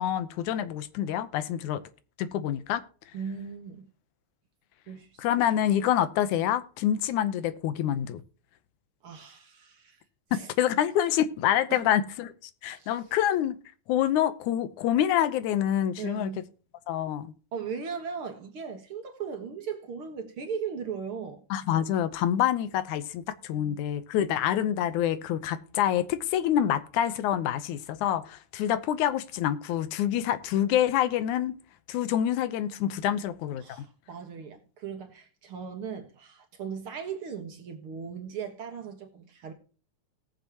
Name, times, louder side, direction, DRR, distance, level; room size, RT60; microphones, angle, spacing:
voice 1, 0.0-1.8 2.2-2.8 5.2-8.2 10.3-12.3 12.6-13.6 13.9-16.3 16.9-17.3 21.5-31.5 31.9-33.8, left 11 dB, 90° left, 2.3 m, -27 dB
voice 2, 3.1-3.9 4.9-5.3 9.0-10.0 10.3-10.5 11.7-11.9 12.7-12.9 16.0-16.5 17.5-21.4 23.5-23.8 33.1-33.2 33.6-39.5, right 6 dB, 55° right, 2.0 m, -38 dB
19.0 x 7.2 x 2.9 m
omnidirectional pair, 3.4 m